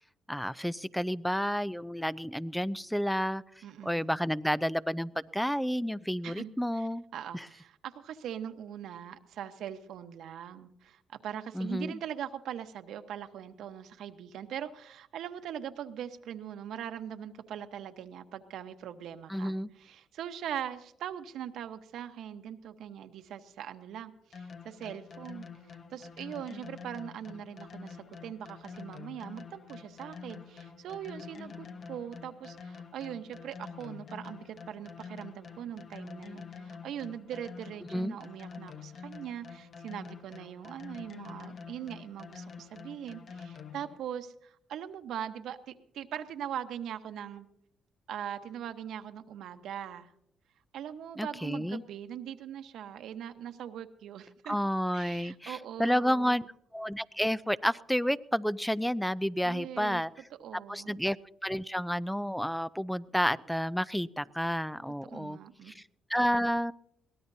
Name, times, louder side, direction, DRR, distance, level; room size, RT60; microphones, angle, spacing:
voice 1, 0.3-3.4 3.8-7.0 7.3-7.5 11.5-12.0 19.3-19.7 37.9-38.2 51.2-51.8 54.5-56.5 56.7-60.1 60.7-61.2 61.4-65.4 65.7-65.8 66.1-66.7, equal, ahead, 18 dB, 0.5 m, -30 dB
voice 2, 3.6-4.2 6.2-47.5 48.1-50.1 50.7-54.6 54.9-56.4 59.4-60.0 60.4-61.0 65.1-65.7, right 9 dB, 80° right, 8 dB, 1.1 m, -41 dB
sound 1, 24.3-44.0, left 5 dB, 50° left, 1.3 m, -47 dB
23.0 x 18.0 x 2.8 m, 0.74 s
cardioid pair, 90°, 0 cm